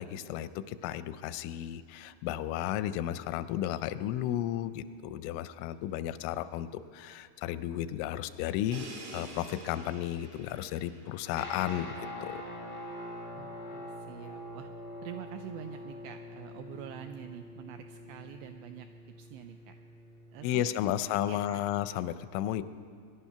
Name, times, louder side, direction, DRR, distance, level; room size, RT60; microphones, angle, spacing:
voice 1, 0.0-8.9 9.1-12.4 20.4-22.6, left 12 dB, 90° left, 13 dB, 3.1 m, -33 dB
Crash cymbal, 8.7-12.5, right 1 dB, 70° right, 4.6 m, -48 dB
sound 1, 11.3-21.8, left 1 dB, 40° left, 1.0 m, -45 dB
voice 2, 13.4-14.7 15.0-18.9 19.2-19.7 20.3-21.7, right 11 dB, 85° right, 7 dB, 2.5 m, -46 dB
22.0 x 11.0 x 5.7 m, 2.1 s
omnidirectional pair, 5.5 m